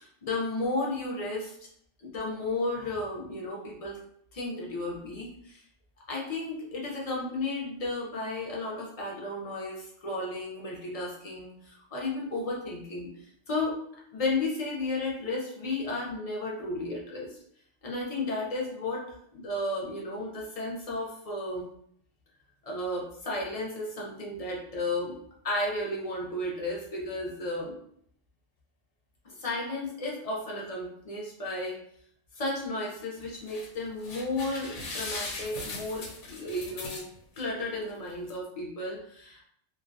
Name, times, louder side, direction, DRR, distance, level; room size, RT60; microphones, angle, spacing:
voice 1, 0.0-1.6 2.0-4.0 4.3-5.6 6.1-13.1 13.5-13.8 14.1-17.4 17.8-19.0 19.3-21.7 22.6-25.2 25.4-27.8 29.4-31.8 32.4-37.1 37.4-39.4, left 2 dB, 45° left, -3 dB, 0.5 m, -33 dB
sound 1, 33.2-33.7 34.0-37.4 37.9-38.0 38.3-38.4, left 3 dB, 80° left, 0.9 m, -39 dB
2.3 x 2.1 x 2.5 m, 0.66 s
omnidirectional pair, 1.3 m